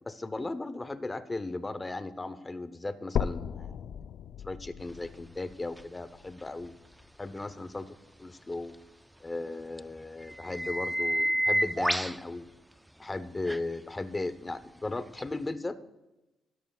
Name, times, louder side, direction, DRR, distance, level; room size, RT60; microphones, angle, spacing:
voice 1, 0.0-3.8 4.4-6.7 7.2-8.7 9.2-12.5 13.0-15.8, left 2 dB, 20° left, 12 dB, 0.8 m, -36 dB
sound 1, 3.2-7.2 7.7-7.8 8.4-8.5 8.8-8.9 9.7-9.8, left 8 dB, 65° left, 0.4 m, -37 dB
sound 2, 5.8-5.9 9.8-9.9 10.3-12.2 13.5-13.6 15.2-15.3, right 1 dB, 5° right, 0.3 m, -29 dB
22.5 x 12.5 x 2.4 m, 1.0 s
cardioid pair, 90°, 0 cm